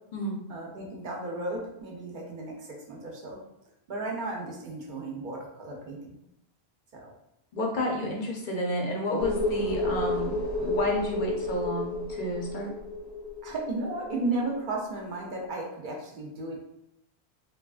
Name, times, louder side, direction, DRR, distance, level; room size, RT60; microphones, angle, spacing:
voice 1, 0.5-3.4 3.9-6.2 6.9-7.1 13.4-16.6, right 2 dB, 55° right, -1 dB, 0.7 m, -34 dB
voice 2, 7.5-10.3 10.6-12.7, left 1 dB, 55° left, 0 dB, 0.7 m, -30 dB
sound 1, 9.2-14.4 14.7-14.8, left 2 dB, 90° left, 0.9 m, -31 dB
2.8 x 2.3 x 2.3 m, 0.82 s
omnidirectional pair, 1.1 m